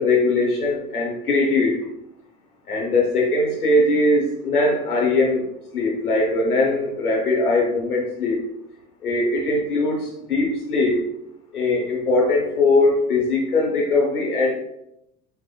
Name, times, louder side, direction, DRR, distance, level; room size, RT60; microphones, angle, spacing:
voice 1, 0.0-1.9 2.7-5.4 5.7-8.4 9.0-11.0 11.5-14.5, left 2 dB, 85° left, -2 dB, 0.9 m, -20 dB
5.5 x 2.8 x 2.2 m, 0.80 s
figure-of-eight pair, 75°, 44 cm